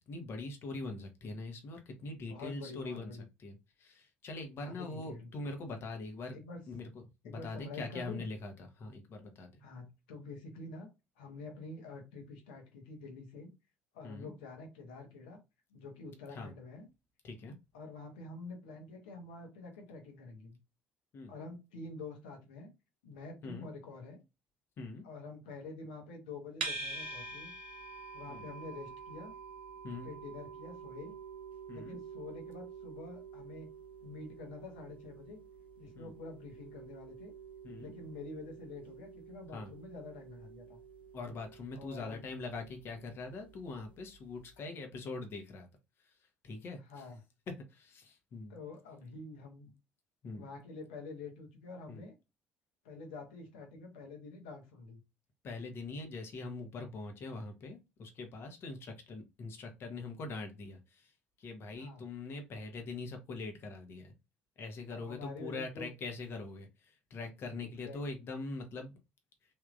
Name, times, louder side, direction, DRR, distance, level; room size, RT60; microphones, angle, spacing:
voice 1, 0.1-6.4 6.7-9.6 14.0-14.3 16.3-16.5 17.2-17.6 21.1-21.3 23.4-23.7 24.8-25.0 28.3-28.5 29.8-30.1 31.7-32.0 36.0-36.1 37.6-37.9 39.5-39.7 41.1-45.7 46.0-46.2 46.4-47.0 47.7-48.6 50.2-50.4 51.9-52.0 55.4-64.1 64.6-69.0, left 3 dB, 45° left, 5 dB, 1.0 m, -43 dB
voice 2, 2.3-3.2 4.6-5.3 6.3-6.6 7.2-8.3 9.6-10.9 11.2-13.5 13.9-15.4 15.7-16.9 17.7-20.6 21.3-22.7 23.0-24.2 25.0-27.5 28.1-29.3 30.0-31.1 31.7-33.7 34.0-35.4 35.8-37.3 37.8-40.8 41.7-42.2 44.7-44.8 46.9-47.2 48.5-49.7 50.3-52.1 52.8-55.0 61.8-62.0 64.9-65.9 67.6-68.0, left 3 dB, 70° left, 3 dB, 1.0 m, -47 dB
sound 1, 26.6-43.8, right 4 dB, 80° right, 0.6 m, -47 dB
3.5 x 2.8 x 2.5 m, 0.24 s
figure-of-eight pair, 50°, 6 cm